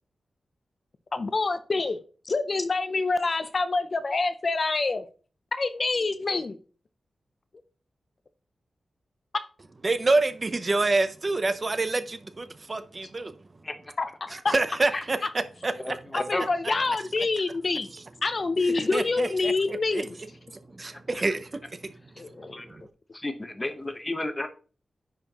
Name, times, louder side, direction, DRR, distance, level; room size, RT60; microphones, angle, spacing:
voice 1, 1.1-5.1 5.5-6.6 14.0-14.5 16.1-17.9 18.2-20.1 22.2-22.6, left 3 dB, 40° left, 0.5 m, -27 dB
voice 2, 9.8-13.3 14.5-15.2 15.6-16.0 18.8-20.0 20.8-21.5 21.8-21.9 22.7-22.8, right 2 dB, 30° right, 0.5 m, -27 dB
voice 3, 15.8-16.5 22.4-22.8 23.1-24.5, left 2 dB, 20° left, 0.9 m, -33 dB
10.0 x 4.3 x 2.9 m
wide cardioid pair, 135°, 0 cm